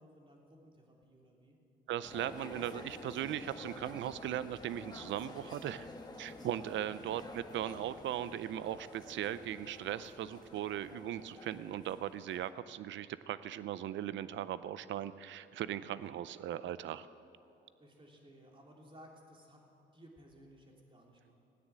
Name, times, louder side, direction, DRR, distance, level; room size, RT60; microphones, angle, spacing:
voice 1, 0.0-1.6 17.8-19.6 19.9-21.4, equal, 25° right, -1 dB, 3.3 m, -58 dB
voice 2, 1.9-5.9 6.2-17.1, right 11 dB, 70° right, 15 dB, 0.6 m, -38 dB
sound 1, 2.0-12.5, left 2 dB, 20° left, 1.5 m, -50 dB
17.0 x 9.8 x 7.6 m, 2.9 s
cardioid pair, 90°, 20 cm